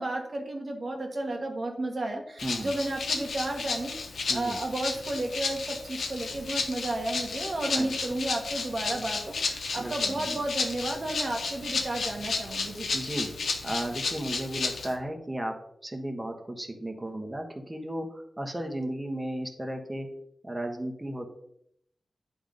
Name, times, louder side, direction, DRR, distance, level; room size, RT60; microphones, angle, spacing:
voice 1, 0.0-3.9 4.3-12.9, right 2 dB, 55° right, 1 dB, 1.5 m, -32 dB
Rattle (instrument), 2.4-14.9, left 4 dB, 85° left, 1.0 m, -33 dB
voice 2, 4.3-4.6 7.7-8.0 9.8-10.4 12.9-13.3 13.6-15.6 15.8-20.1 20.4-21.3, right 1 dB, 20° right, 4 dB, 1.5 m, -34 dB
9.1 x 3.5 x 5.3 m, 0.73 s
cardioid pair, 50°, 0 cm